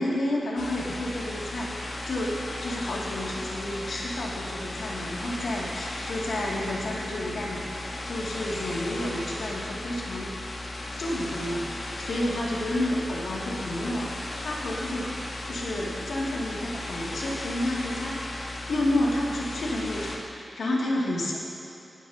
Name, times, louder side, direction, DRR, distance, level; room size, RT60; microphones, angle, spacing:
voice 1, 0.0-10.3 11.0-14.1 14.4-15.1 15.4-21.4, left 1 dB, 85° left, -4 dB, 2.5 m, -30 dB
sound 1, 0.6-20.2, left 1 dB, 65° left, 1.6 m, -36 dB
19.0 x 12.5 x 2.9 m, 2.8 s
wide cardioid pair, 80°, 0 cm